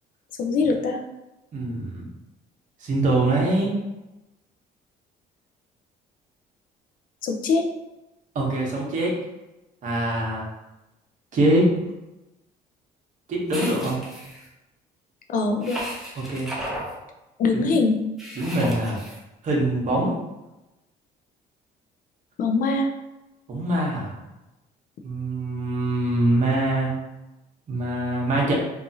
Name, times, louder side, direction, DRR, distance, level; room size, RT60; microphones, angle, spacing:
voice 1, 0.4-1.0 7.2-7.7 15.3-15.8 17.4-18.0 22.4-22.9, left 3 dB, 55° left, 3 dB, 0.4 m, -22 dB
voice 2, 1.5-2.1 2.8-3.8 8.3-9.2 9.8-10.5 11.3-11.7 13.3-14.0 16.2-16.5 17.5-17.7 18.4-19.0 19.4-20.2 23.5-24.1 25.0-26.9 27.7-28.5, right 1 dB, 50° right, -2 dB, 0.9 m, -23 dB
sound 1, 13.5-14.4 15.6-16.9 18.2-19.2, equal, ahead, 0.7 m, -34 dB
2.7 x 2.4 x 2.6 m, 0.99 s
cardioid pair, 110°, 17 cm